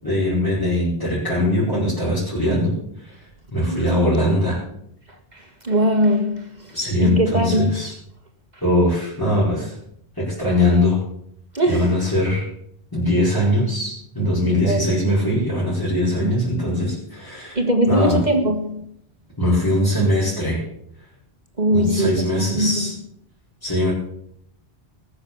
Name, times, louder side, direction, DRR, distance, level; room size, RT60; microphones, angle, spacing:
voice 1, 0.0-3.1 3.5-4.6 6.7-7.9 8.6-9.7 10.2-11.0 11.7-12.5 12.9-17.6 17.9-18.2 19.4-20.6 21.7-22.9 23.6-23.9, left 1 dB, 20° left, 5.1 m, -21 dB
voice 2, 5.3-7.7 11.5-11.9 14.6-14.8 17.5-18.8 21.6-22.9, equal, 40° right, 1.7 m, -21 dB
20.0 x 6.7 x 7.0 m
omnidirectional pair, 1.1 m